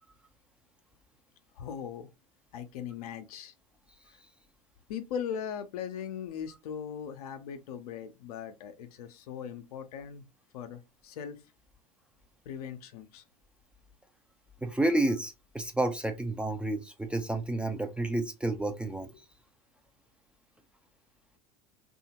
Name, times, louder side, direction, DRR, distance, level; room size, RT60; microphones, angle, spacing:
voice 1, 1.6-2.1 2.5-3.5 4.9-10.2 10.5-11.4 12.5-13.2, left 8 dB, 70° left, 0.6 m, -39 dB
voice 2, 14.6-19.1, right 2 dB, 5° right, 0.5 m, -30 dB
2.7 x 2.4 x 2.8 m
hypercardioid pair, 80°, 20 cm